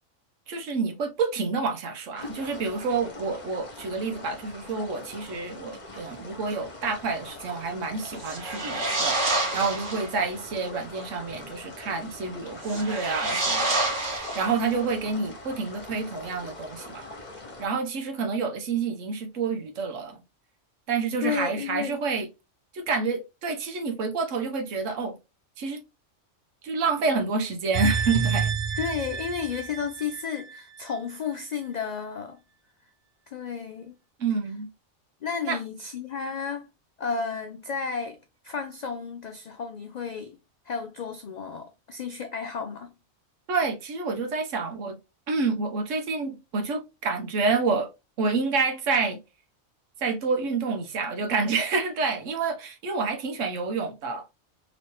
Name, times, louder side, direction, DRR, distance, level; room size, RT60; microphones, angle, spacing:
voice 1, 0.5-17.1 17.6-20.2 20.9-22.3 22.7-25.2 25.6-25.8 26.6-28.5 34.2-34.7 35.4-35.6 43.5-45.0 45.3-47.9 48.2-49.2 50.0-54.3, right 4 dB, 80° right, 1.1 m, -28 dB
sound 1, 2.2-17.7, left 2 dB, 40° left, 0.9 m, -43 dB
sound 2, 8.1-10.2 12.6-14.9, right 2 dB, 45° right, 1.1 m, -28 dB
voice 2, 21.2-22.0 28.8-32.4 33.3-34.0 35.2-36.7 37.0-38.2 38.4-40.4 40.6-42.9, left 6 dB, 90° left, 0.3 m, -32 dB
sound 3, 27.7-31.0 31.3-31.4, right 6 dB, 60° right, 0.5 m, -29 dB
3.1 x 3.1 x 2.9 m
omnidirectional pair, 1.3 m